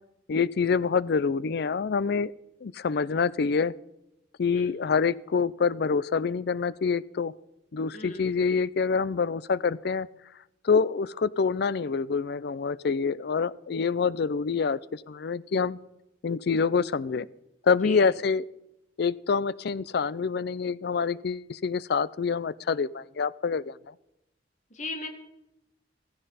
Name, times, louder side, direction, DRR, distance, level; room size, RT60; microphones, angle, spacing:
voice 1, 0.3-2.3 2.6-3.7 4.4-7.3 7.7-10.1 10.6-15.8 16.2-17.3 17.6-18.4 19.0-23.9, left 5 dB, 60° left, 20 dB, 0.4 m, -26 dB
voice 2, 7.9-8.3 17.8-18.1 24.7-25.1, left 2 dB, 45° left, 4 dB, 1.9 m, -36 dB
15.5 x 15.0 x 4.1 m, 0.87 s
head